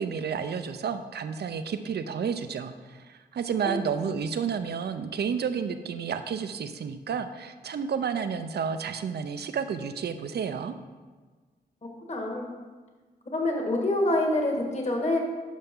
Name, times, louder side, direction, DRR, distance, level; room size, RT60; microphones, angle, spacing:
voice 1, 0.0-10.7, right 6 dB, 70° right, 9 dB, 0.6 m, -31 dB
voice 2, 12.1-12.5 13.3-15.2, left 1 dB, 40° left, 1 dB, 1.9 m, -26 dB
11.0 x 5.5 x 3.8 m, 1.4 s
cardioid pair, 70°, 17 cm